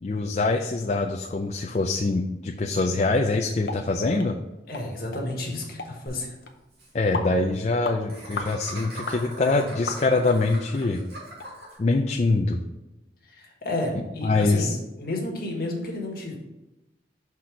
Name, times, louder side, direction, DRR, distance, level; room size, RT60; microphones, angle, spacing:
voice 1, 0.0-4.4 6.9-11.0 11.8-12.6 13.9-14.8, left 3 dB, 35° left, 2 dB, 0.4 m, -24 dB
sound 1, 3.7-3.8 4.2-4.3 4.7-4.9 5.1-5.2 5.8-5.9 6.5-6.6 7.1-7.3 7.8-8.0 8.4-8.5 9.1-9.2 9.9-10.3 10.8-10.9 11.4-11.5 11.9-12.0, left 3 dB, 70° left, 0.7 m, -33 dB
voice 2, 4.7-6.3 13.3-16.4, left 2 dB, 55° left, 0 dB, 1.5 m, -31 dB
Laughter, 6.1-6.2 6.4-6.5 6.7-6.9 8.1-11.8, right 1 dB, 65° right, 2.0 m, -41 dB
5.9 x 4.2 x 4.9 m, 1.0 s
head